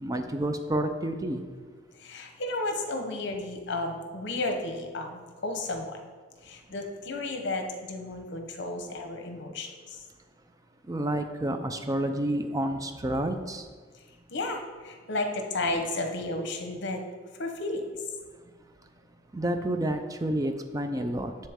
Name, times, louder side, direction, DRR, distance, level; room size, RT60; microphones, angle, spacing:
voice 1, 0.0-1.4 10.9-13.7 19.3-21.3, right 1 dB, 20° right, 7 dB, 0.4 m, -29 dB
voice 2, 2.0-6.0 6.4-10.0 14.3-17.0 17.4-17.9, left 2 dB, 60° left, 4 dB, 0.9 m, -33 dB
7.6 x 7.1 x 3.6 m, 1.5 s
head